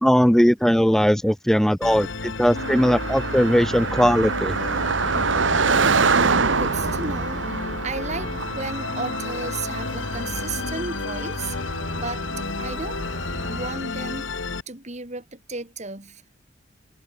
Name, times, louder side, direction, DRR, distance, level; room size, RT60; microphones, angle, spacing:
voice 1, 0.0-4.5, equal, ahead, 0.7 m, -19 dB
Musical instrument, 1.8-14.6, left 3 dB, 75° left, 1.2 m, -31 dB
Car passing by, 2.6-13.7, right 4 dB, 70° right, 1.2 m, -26 dB
voice 2, 6.1-11.6 11.9-13.0 13.5-14.3 14.7-16.2, right 3 dB, 35° right, 3.2 m, -34 dB
head